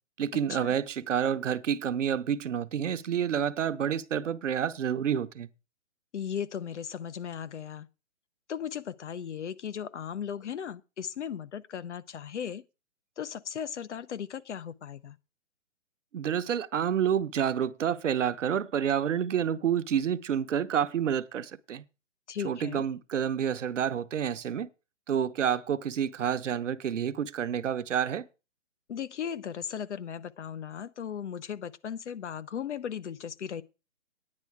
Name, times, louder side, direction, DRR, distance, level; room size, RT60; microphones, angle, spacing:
voice 1, 0.2-5.5 16.1-21.8 22.4-24.7 25.1-28.3, right 8 dB, 70° right, 0.9 m, -29 dB
voice 2, 6.1-7.9 8.5-12.6 13.2-15.2 22.3-22.9 28.9-33.6, left 8 dB, 65° left, 0.8 m, -37 dB
10.0 x 9.8 x 4.7 m
hypercardioid pair, 155°, 38 cm